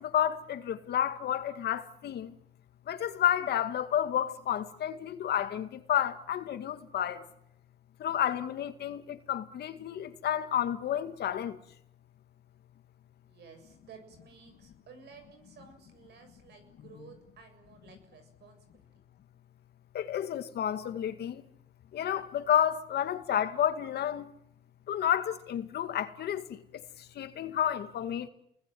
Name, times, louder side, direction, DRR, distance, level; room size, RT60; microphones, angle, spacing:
voice 1, 0.0-2.3 2.9-7.2 8.0-11.6 16.9-17.1 19.9-21.4 21.9-24.3 24.9-26.6 27.2-28.3, left 10 dB, 65° left, 2.1 m, -30 dB
voice 2, 13.2-18.8, right 6 dB, 70° right, 7.4 m, -54 dB
28.0 x 21.0 x 9.3 m
cardioid pair, 120°, 18 cm